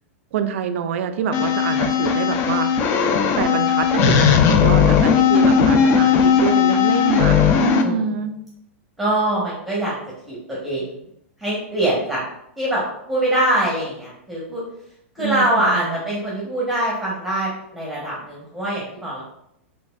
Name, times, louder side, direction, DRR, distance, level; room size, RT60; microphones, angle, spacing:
voice 1, 0.3-2.9 3.4-8.4 15.2-16.0, right 7 dB, 70° right, 9 dB, 0.4 m, -26 dB
sound 1, 1.3-7.8, left 7 dB, 35° left, 0.4 m, -17 dB
voice 2, 9.0-9.9 10.3-10.8 11.4-12.2 12.6-12.8 13.1-14.6 15.2-19.2, right 1 dB, ahead, -5 dB, 0.9 m, -23 dB
3.9 x 3.3 x 2.3 m, 0.75 s
hypercardioid pair, 125°, 7 cm